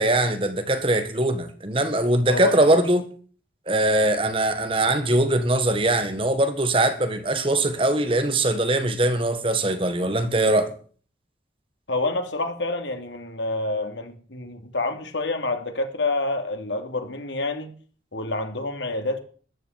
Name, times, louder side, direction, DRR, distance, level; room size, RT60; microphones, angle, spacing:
voice 1, 0.0-3.0 3.7-10.7, right 1 dB, 30° right, 1.6 m, -21 dB
voice 2, 2.3-2.6 11.9-17.7 18.1-19.2, left 2 dB, 85° left, 3.1 m, -28 dB
14.0 x 11.0 x 7.4 m
head